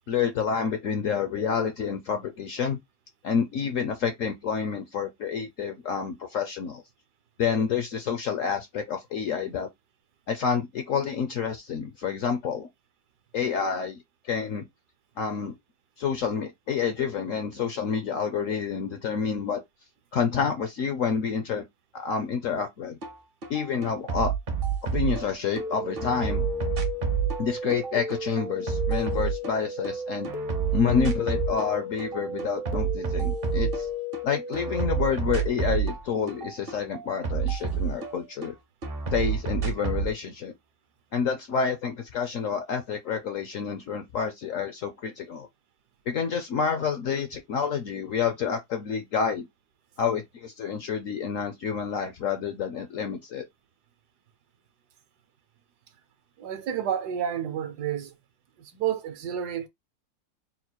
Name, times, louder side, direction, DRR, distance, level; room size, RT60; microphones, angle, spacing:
voice 1, 0.1-2.8 3.2-6.8 7.4-9.7 10.3-12.7 13.3-14.0 14.3-14.6 15.2-15.6 16.0-19.6 20.1-21.6 21.9-23.0 23.5-24.3 24.9-26.4 27.4-30.3 30.7-33.9 34.2-38.5 39.1-40.5 41.1-45.5 46.1-49.5 50.0-53.5, left 6 dB, 65° left, 0.8 m, -28 dB
sound 1, 23.0-23.1 23.4-25.6 26.0-29.9 30.2-31.7 32.0-34.2 34.5-38.5 38.8-40.1, right 7 dB, 45° right, 0.8 m, -29 dB
sound 2, 25.6-35.1, left 2 dB, 85° left, 0.4 m, -34 dB
voice 2, 56.4-58.2 58.6-59.7, right 9 dB, 70° right, 1.2 m, -30 dB
4.0 x 2.2 x 4.4 m
omnidirectional pair, 1.9 m